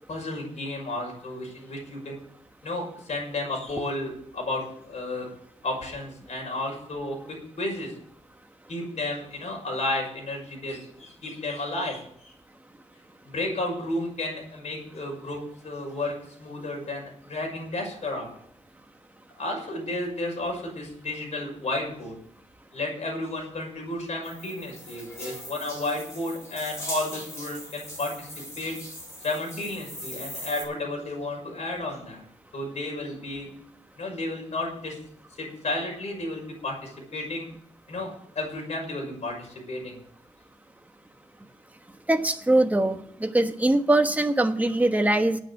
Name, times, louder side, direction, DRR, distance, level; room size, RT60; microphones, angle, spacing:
voice 1, 0.1-2.2 2.6-5.3 5.6-7.9 8.7-12.3 13.2-18.3 19.4-22.2 22.7-28.8 29.2-32.2 32.5-33.5 34.0-35.0 35.3-37.5 37.9-40.0, left 2 dB, 60° left, 1 dB, 5.9 m, -32 dB
sound 1, 24.2-30.6, left 1 dB, 20° left, 6.4 m, -40 dB
voice 2, 42.1-45.4, right 1 dB, 10° right, 6 dB, 1.1 m, -22 dB
9.1 x 8.8 x 9.5 m, 0.65 s
wide cardioid pair, 165°, 13 cm